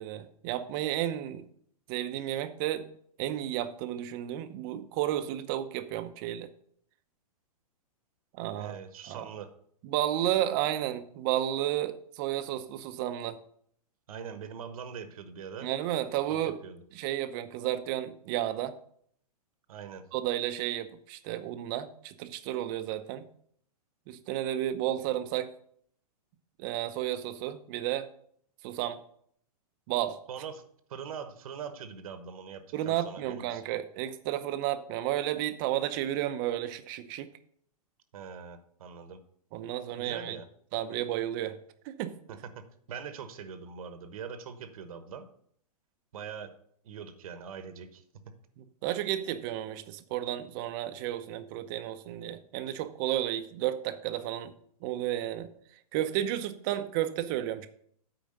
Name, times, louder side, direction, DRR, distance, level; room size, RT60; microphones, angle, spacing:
voice 1, 0.0-1.4 1.9-2.9 3.2-6.5 8.4-8.7 9.1-9.2 9.8-13.4 15.6-16.6 16.9-18.8 20.1-23.2 24.1-25.5 26.6-28.1 28.6-29.0 29.9-30.2 32.7-37.3 39.5-40.4 40.7-41.6 41.9-42.1 48.6-54.5 54.8-55.5 55.9-57.7, right 12 dB, 35° right, 10 dB, 0.7 m, -32 dB
voice 2, 8.5-9.5 14.1-15.7 16.3-16.8 19.7-20.0 30.3-30.6 30.9-33.6 38.1-39.2 40.0-40.5 42.3-45.3 46.1-46.6 46.8-48.0, right 7 dB, 65° right, 10 dB, 1.2 m, -42 dB
8.8 x 5.0 x 6.5 m, 0.65 s
hypercardioid pair, 145°, 20 cm